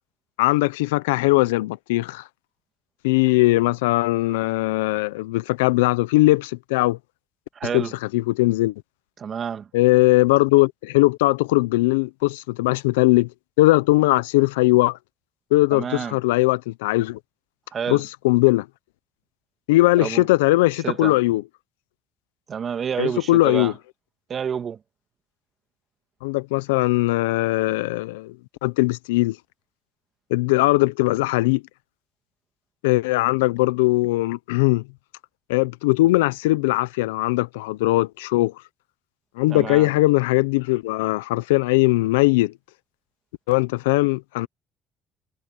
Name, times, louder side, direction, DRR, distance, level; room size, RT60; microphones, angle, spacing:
voice 1, 0.4-2.2 3.0-7.0 7.7-7.8 8.1-8.7 9.7-13.3 13.6-15.0 15.5-17.2 17.9-18.7 19.7-21.4 23.0-23.7 26.2-28.3 28.6-29.4 30.3-31.6 32.8-34.8 35.5-38.5 39.4-42.5 43.5-44.5, left 20 dB, 85° left, 0.7 m, -20 dB
voice 2, 7.5-7.9 9.2-9.7 15.7-16.2 17.7-18.0 20.0-20.3 20.8-21.2 22.5-23.7 24.3-24.8 39.5-39.9, right 7 dB, 45° right, 2.2 m, -29 dB
hypercardioid pair, 65°, 0 cm